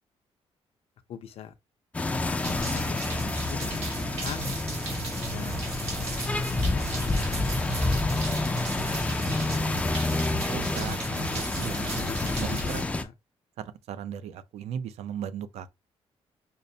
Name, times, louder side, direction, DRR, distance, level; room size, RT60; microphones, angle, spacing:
voice 1, 1.1-1.5 2.5-4.5 5.3-5.8 6.0-8.2 12.0-12.6 13.0-13.1, left 9 dB, 65° left, 0.5 m, -43 dB
sound 1, 1.9-13.0, left 2 dB, 10° left, 0.3 m, -29 dB
sound 2, 2.4-12.8, right 4 dB, 65° right, 1.5 m, -37 dB
voice 2, 10.4-12.0 12.4-12.9 13.6-15.7, right 8 dB, 85° right, 0.4 m, -37 dB
5.4 x 2.0 x 2.6 m
cardioid pair, 165°, 11 cm